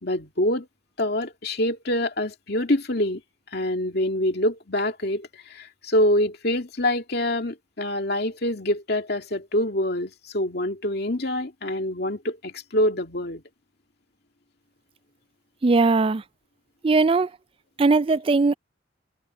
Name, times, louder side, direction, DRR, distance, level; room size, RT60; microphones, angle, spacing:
voice 1, 0.0-0.7 1.0-3.2 3.5-13.4, left 1 dB, 60° left, 2.4 m, -25 dB
voice 2, 15.6-16.2 16.8-17.3 17.8-18.5, right 3 dB, 30° right, 0.4 m, -19 dB
head